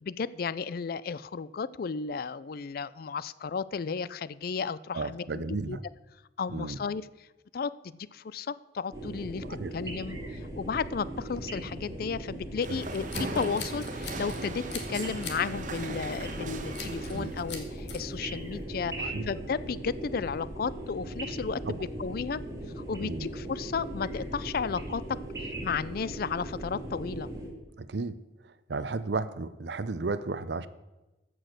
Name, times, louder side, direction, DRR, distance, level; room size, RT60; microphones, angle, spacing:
voice 1, 0.0-5.8 6.4-7.1 7.5-9.4 9.7-10.2 10.6-14.6 14.9-22.4 22.8-25.0 25.6-27.3, left 5 dB, 55° left, 18 dB, 0.4 m, -33 dB
voice 2, 4.9-5.8 6.5-6.8 9.4-9.7 12.7-12.8 17.1-17.3 19.0-19.3 21.7-21.8 23.0-23.3 27.8-30.7, right 3 dB, 70° right, 15 dB, 0.6 m, -34 dB
sound 1, 8.9-27.5, right 1 dB, 20° right, 2.1 m, -39 dB
sound 2, 12.6-17.5, right 3 dB, 45° right, 1.1 m, -39 dB
Scissors, 12.8-14.4 14.7-15.4 15.7-16.0 16.7-17.2 17.5-18.0, left 6 dB, 75° left, 1.8 m, -41 dB
14.5 x 6.3 x 6.5 m, 1.0 s
head